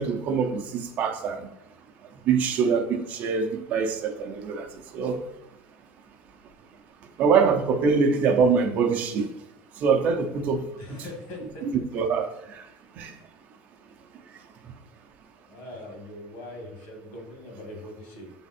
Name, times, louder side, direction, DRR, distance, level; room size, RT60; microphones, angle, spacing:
voice 1, 0.0-1.5 2.3-5.2 7.2-9.3 9.8-10.6 11.6-12.6 13.0-13.1, right 5 dB, 40° right, 0.7 m, -24 dB
voice 2, 10.8-12.1 15.4-18.3, left 1 dB, 65° left, 2.1 m, -41 dB
7.1 x 3.5 x 4.3 m
cardioid pair, 160°, 4 cm